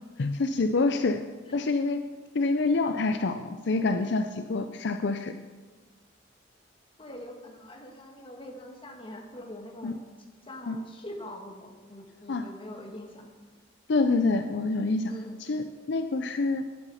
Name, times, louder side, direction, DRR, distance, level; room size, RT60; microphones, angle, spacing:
voice 1, 0.2-1.2 1.5-2.0 2.3-5.4 9.8-10.0 10.7-10.8 12.3-12.4 13.9-15.1 15.4-16.6, left 3 dB, 60° left, 8 dB, 0.5 m, -27 dB
voice 2, 7.0-10.0 10.4-13.3 15.1-15.4, left 1 dB, 25° left, 2 dB, 1.5 m, -43 dB
11.0 x 9.9 x 5.6 m, 1.4 s
head